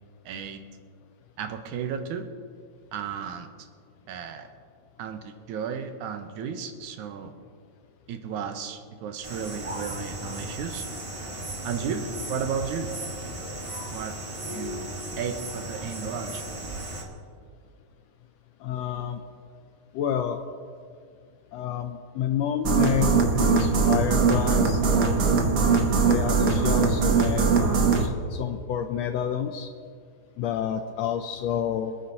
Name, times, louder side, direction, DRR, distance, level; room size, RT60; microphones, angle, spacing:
voice 1, 0.3-0.6 1.4-2.3 2.9-3.5 4.1-4.5 5.0-7.3 8.1-10.8 11.6-12.9 13.9-14.1 14.5-14.9 15.2-16.4, right 7 dB, 85° right, 7 dB, 2.3 m, -33 dB
sound 1, 9.2-17.0, right 1 dB, 25° right, 0.7 m, -36 dB
voice 2, 18.6-19.2 19.9-20.4 21.5-24.8 25.6-29.7 30.4-31.9, left 9 dB, 80° left, 7 dB, 1.5 m, -29 dB
sound 2, 22.6-28.1, right 4 dB, 65° right, 1.0 m, -21 dB
26.0 x 9.3 x 2.9 m, 2.2 s
omnidirectional pair, 3.4 m